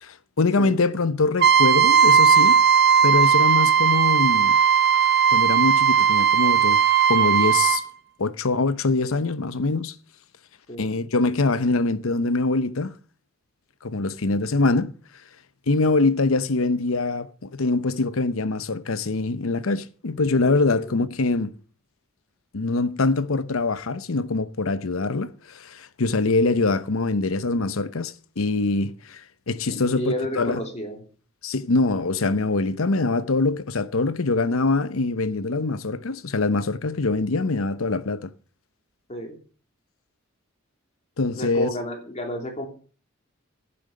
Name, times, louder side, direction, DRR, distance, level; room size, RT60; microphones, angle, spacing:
voice 1, 0.0-2.6 3.0-4.6 5.3-6.8 7.1-7.8 8.2-9.9 10.8-12.9 13.8-15.0 15.7-21.5 22.5-30.6 31.4-38.3 41.2-41.7, left 3 dB, 90° left, 0.8 m, -24 dB
Trumpet, 1.4-7.8, right 7 dB, 55° right, 0.9 m, -17 dB
voice 2, 29.7-31.0 39.1-39.4 41.3-42.7, equal, 35° left, 3.0 m, -31 dB
11.0 x 8.7 x 6.6 m
head